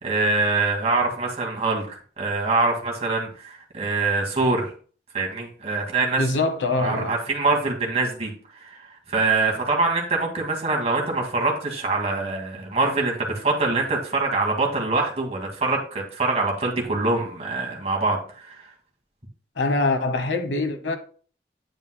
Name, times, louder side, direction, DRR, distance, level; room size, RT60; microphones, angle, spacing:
voice 1, 0.0-4.7 5.1-6.2 6.8-8.3 8.6-8.8 9.1-18.6, right 3 dB, 35° right, 2.1 m, -24 dB
voice 2, 6.2-7.2 19.6-21.0, left 3 dB, 90° left, 1.1 m, -24 dB
9.5 x 8.8 x 2.2 m
head